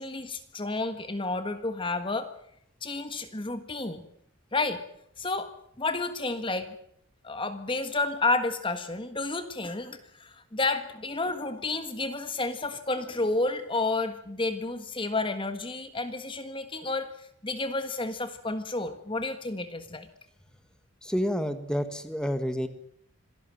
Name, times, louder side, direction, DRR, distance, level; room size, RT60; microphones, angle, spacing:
voice 1, 0.0-2.3 2.8-4.0 4.5-4.8 5.2-5.5 5.8-6.7 7.2-20.1, left 3 dB, 25° left, 9 dB, 1.5 m, -31 dB
voice 2, 21.0-22.7, equal, 5° left, 9 dB, 1.7 m, -29 dB
26.5 x 17.5 x 7.7 m, 0.69 s
head